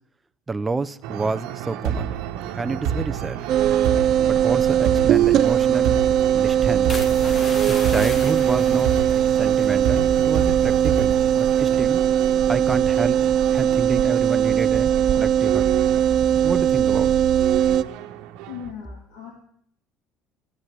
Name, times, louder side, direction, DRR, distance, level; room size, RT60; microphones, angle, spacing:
voice 1, 0.5-2.1 2.5-3.4 4.2-6.0 6.3-7.0 7.7-8.9 9.4-12.0 12.5-13.2 13.5-15.7 16.4-17.1, right 3 dB, 15° right, 10 dB, 0.7 m, -29 dB
sound 1, 1.0-18.7, right 9 dB, 75° right, 1.2 m, -30 dB
sound 2, 3.5-17.8, right 10 dB, 50° right, 0.7 m, -20 dB
sound 3, 6.9-10.6 10.9-11.3 11.7-12.0, left 3 dB, 30° left, 1.9 m, -37 dB
voice 2, 18.4-19.3, left 8 dB, 85° left, 0 dB, 3.0 m, -37 dB
13.5 x 10.0 x 9.5 m, 0.66 s
cardioid pair, 120°, 0 cm